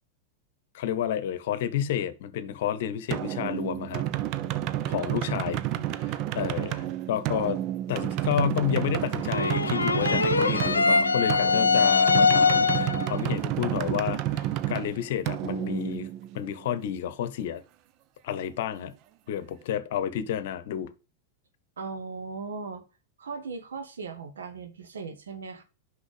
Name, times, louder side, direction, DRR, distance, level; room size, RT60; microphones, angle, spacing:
voice 1, 0.7-4.1 4.9-5.6 6.3-7.6 7.9-16.1 16.3-17.6 18.2-18.9 19.3-20.9, left 10 dB, 55° left, 0.9 m, -30 dB
sound 1, 3.1-16.7, right 12 dB, 40° right, 0.6 m, -30 dB
voice 2, 5.0-6.0 21.8-22.8 23.2-25.6, right 5 dB, 65° right, 1.5 m, -38 dB
sound 2, 9.3-13.1, left 5 dB, 75° left, 0.6 m, -22 dB
6.3 x 5.7 x 6.8 m
figure-of-eight pair, 90°, 0 cm